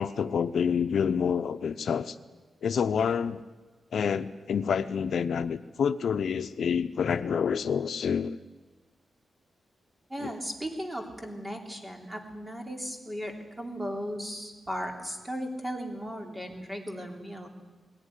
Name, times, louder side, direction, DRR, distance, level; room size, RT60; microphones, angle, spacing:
voice 1, 0.0-2.2 2.6-3.4 3.9-8.4 10.2-10.3, left 7 dB, 70° left, 11 dB, 0.7 m, -28 dB
voice 2, 10.1-17.5, equal, 15° right, 3 dB, 3.2 m, -36 dB
20.0 x 17.0 x 10.0 m, 1.3 s
wide cardioid pair, 125°, 0 cm